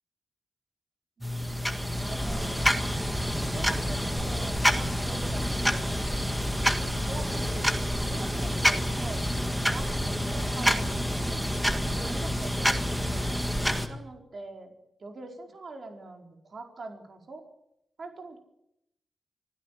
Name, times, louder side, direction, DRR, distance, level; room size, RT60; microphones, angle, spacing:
sound 1, 1.2-13.9, equal, ahead, 1.9 m, -28 dB
voice 1, 1.2-1.7 2.0-2.8 3.4-6.1 6.8-13.5 13.8-17.4 18.0-18.4, right 3 dB, 45° right, 3 dB, 4.8 m, -44 dB
26.0 x 16.0 x 8.6 m, 0.80 s
wide cardioid pair, 165°, 0 cm